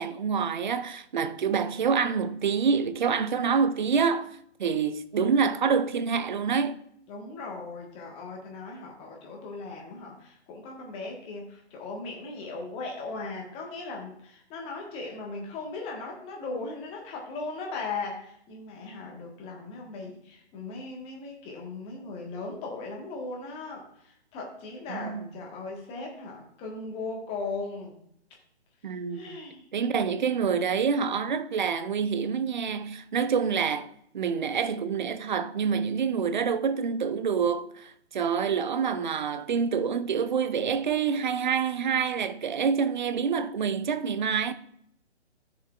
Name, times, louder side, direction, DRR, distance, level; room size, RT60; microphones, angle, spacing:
voice 1, 0.0-4.3 4.6-6.8 24.9-25.2 28.8-29.4 29.7-33.9 34.1-44.5, right 6 dB, 45° right, 0.5 m, -27 dB
voice 2, 7.1-28.0 29.1-29.6, left 3 dB, 15° left, 1.5 m, -38 dB
13.0 x 6.9 x 2.5 m
figure-of-eight pair, 135°, 35 cm